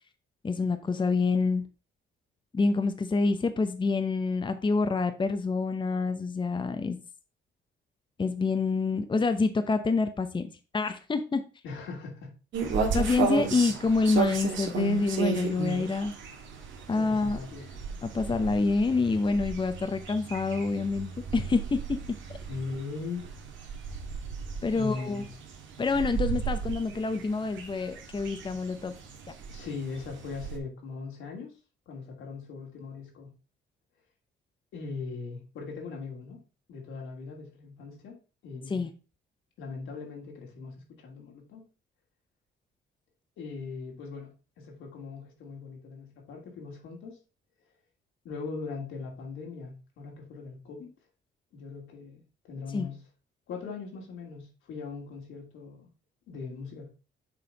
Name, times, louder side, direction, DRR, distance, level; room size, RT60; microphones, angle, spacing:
voice 1, 0.4-1.6 2.5-7.0 8.2-11.4 12.9-16.1 16.9-17.4 18.1-21.8 22.1-22.2 24.6-25.2 25.8-28.9 38.7-38.9 52.7-52.9, left 4 dB, 25° left, 8 dB, 0.7 m, -27 dB
voice 2, 11.6-12.3 13.3-13.7 16.9-17.8 22.5-23.3 24.7-25.3 29.5-31.5 31.9-33.3 34.7-36.4 36.7-38.1 38.4-38.8 39.6-41.6 43.4-47.2 48.2-50.9 51.5-53.0 53.5-55.9 56.3-56.9, left 4 dB, 85° left, 0 dB, 2.7 m, -40 dB
sound 1, 12.5-30.6, right 5 dB, 75° right, 1.6 m, -34 dB
6.9 x 4.1 x 5.1 m, 0.33 s
cardioid pair, 90°, 20 cm